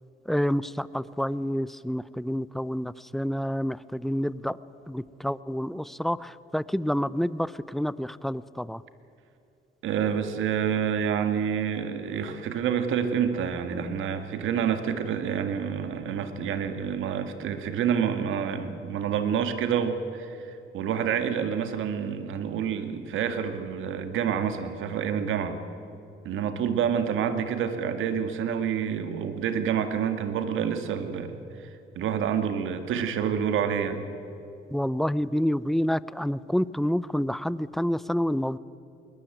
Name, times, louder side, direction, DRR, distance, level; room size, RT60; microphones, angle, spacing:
voice 1, 0.3-4.6 4.9-8.8 34.7-38.6, equal, ahead, 18 dB, 0.6 m, -28 dB
voice 2, 9.8-25.6 26.3-31.7 32.0-34.0, right 8 dB, 80° right, 8 dB, 2.0 m, -28 dB
21.0 x 20.5 x 9.1 m, 2.8 s
cardioid pair, 90°, 20 cm